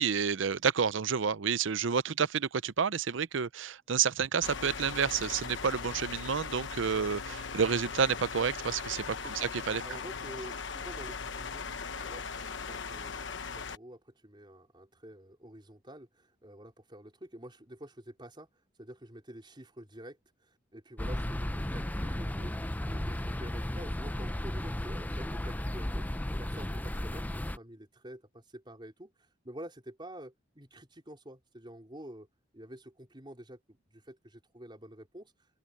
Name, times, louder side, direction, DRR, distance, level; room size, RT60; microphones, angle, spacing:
voice 1, 0.0-9.8, right 6 dB, 75° right, 0.6 m, -30 dB
sound 1, 4.4-13.8, left 5 dB, 70° left, 1.1 m, -39 dB
voice 2, 9.8-11.7 12.0-18.5 18.8-22.5 22.8-27.3 27.5-32.3 32.5-35.3, right 1 dB, 25° right, 4.3 m, -48 dB
sound 2, 21.0-27.6, left 1 dB, 10° left, 0.6 m, -34 dB
open air
head